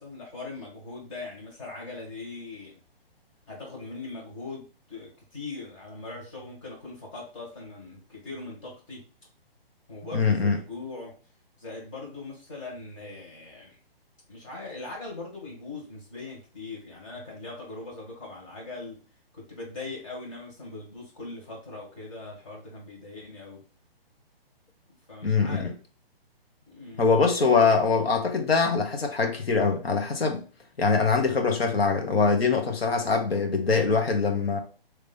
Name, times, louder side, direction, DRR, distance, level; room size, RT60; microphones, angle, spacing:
voice 1, 0.0-2.8 3.5-9.0 9.9-11.1 11.6-13.8 14.3-19.0 19.3-23.6 25.1-25.8 26.7-27.3, left 3 dB, 30° left, 1.9 m, -40 dB
voice 2, 10.1-10.6 25.2-25.7 27.0-30.4 30.8-34.6, left 4 dB, 75° left, 1.3 m, -23 dB
3.4 x 3.2 x 4.0 m
hypercardioid pair, 170°, 30 cm